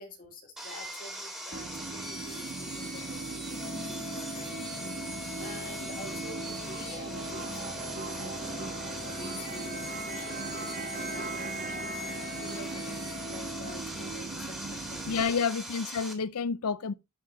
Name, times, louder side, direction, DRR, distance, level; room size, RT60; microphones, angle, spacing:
voice 1, 0.0-15.4, left 1 dB, 40° left, 2.1 m, -48 dB
Sawing, 0.6-16.1, equal, 5° right, 2.1 m, -41 dB
sound 1, 1.5-15.2, right 4 dB, 40° right, 0.6 m, -39 dB
Organ, 3.5-14.5, left 6 dB, 20° left, 0.5 m, -45 dB
voice 2, 15.1-16.9, left 5 dB, 75° left, 0.5 m, -29 dB
13.0 x 4.8 x 2.7 m
head